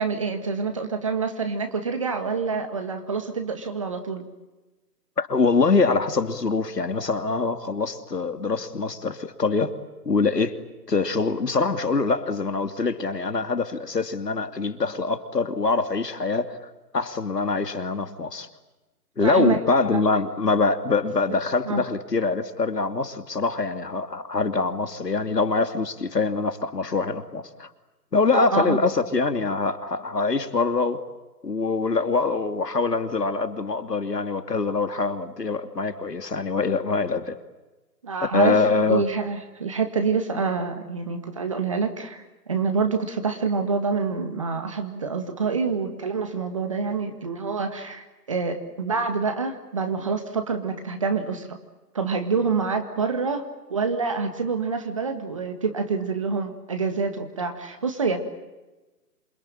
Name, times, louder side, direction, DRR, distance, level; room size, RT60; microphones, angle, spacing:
voice 1, 0.0-4.2 19.2-19.6 19.9-20.0 21.7-21.8 28.3-28.8 38.0-38.6 38.9-42.2 42.5-51.6 51.9-58.2, right 4 dB, 20° right, 6 dB, 1.8 m, -27 dB
voice 2, 5.2-9.7 10.0-10.5 10.9-16.5 16.9-18.5 19.2-27.7 28.1-31.0 31.4-37.3 38.3-39.0, left 4 dB, 75° left, 9 dB, 2.9 m, -24 dB
27.5 x 24.0 x 8.9 m, 1.1 s
figure-of-eight pair, 170°, 48 cm